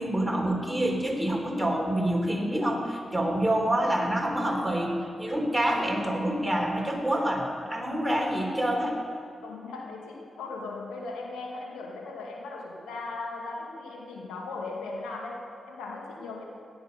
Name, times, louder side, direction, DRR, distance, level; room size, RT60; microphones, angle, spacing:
voice 1, 0.0-9.0, right 1 dB, 5° right, 0 dB, 3.6 m, -27 dB
voice 2, 9.4-16.4, left 3 dB, 90° left, 0 dB, 2.2 m, -38 dB
17.0 x 10.5 x 5.4 m, 2.7 s
supercardioid pair, 45°, 0 cm